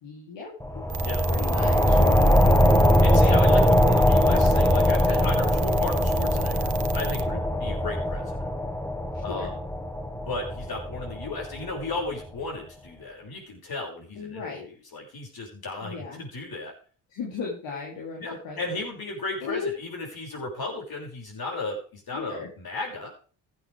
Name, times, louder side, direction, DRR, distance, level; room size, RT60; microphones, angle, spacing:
voice 1, 0.0-0.8 1.3-2.2 9.3-9.5 14.1-14.7 15.8-16.2 17.1-18.8 19.4-19.7 22.1-22.5, left 5 dB, 75° left, -4 dB, 3.3 m, -36 dB
sound 1, 0.6-11.8, equal, 5° left, 1.6 m, -21 dB
sound 2, 0.9-7.2, right 7 dB, 60° right, 1.2 m, -33 dB
voice 2, 3.0-8.4 9.2-9.6 10.1-14.5 14.9-16.7 18.2-23.1, left 2 dB, 55° left, 0 dB, 6.3 m, -35 dB
15.5 x 9.0 x 3.5 m, 0.39 s
supercardioid pair, 60°, 45 cm